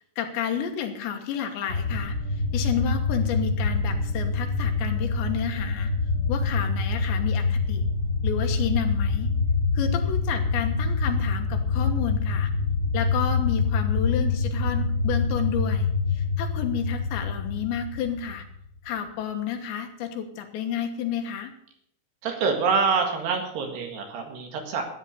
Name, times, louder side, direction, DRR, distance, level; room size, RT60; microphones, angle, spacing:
voice 1, 0.0-2.2 2.5-5.9 6.3-7.8 8.2-9.3 9.7-12.5 12.9-18.4 18.8-21.5, left 8 dB, 75° left, 5 dB, 3.4 m, -31 dB
sound 1, 1.7-18.5, left 4 dB, 25° left, 2.4 m, -26 dB
voice 2, 22.2-24.8, right 5 dB, 65° right, 4 dB, 3.7 m, -26 dB
13.5 x 9.8 x 6.8 m, 0.71 s
omnidirectional pair, 5.4 m